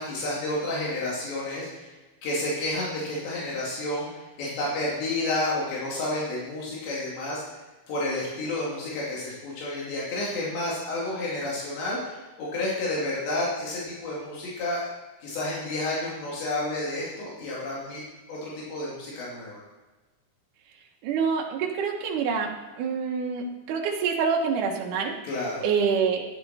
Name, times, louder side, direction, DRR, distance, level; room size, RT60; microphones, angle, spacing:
voice 1, 0.0-1.9 2.2-4.1 4.4-7.4 7.9-14.9 15.2-18.0 18.3-19.6 25.2-25.6, left 2 dB, 85° left, -6 dB, 4.6 m, -30 dB
voice 2, 21.0-25.2 25.6-26.2, right 6 dB, 65° right, 1 dB, 2.3 m, -26 dB
13.0 x 9.7 x 4.2 m, 1.2 s
omnidirectional pair, 4.9 m